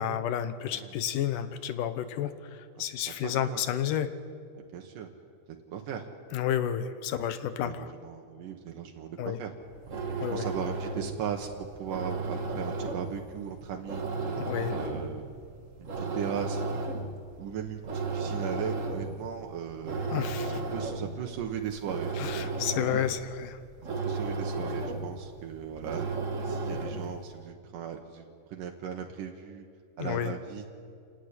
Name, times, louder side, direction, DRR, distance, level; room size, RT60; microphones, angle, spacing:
voice 1, 0.0-4.1 6.3-7.9 9.2-9.4 10.2-10.4 14.4-14.7 20.1-20.6 22.2-23.6 30.0-30.3, left 10 dB, 85° left, 11 dB, 2.6 m, -31 dB
voice 2, 2.8-3.6 4.6-5.1 5.5-6.0 7.6-9.5 10.3-14.0 14.7-15.2 15.8-16.6 17.4-20.1 20.7-22.5 24.0-26.1 26.4-29.7 30.0-30.7, right 8 dB, 80° right, 2 dB, 2.8 m, -38 dB
sound 1, 9.6-27.2, right 3 dB, 45° right, 1.0 m, -35 dB
29.0 x 11.5 x 9.7 m, 2.3 s
omnidirectional pair, 3.7 m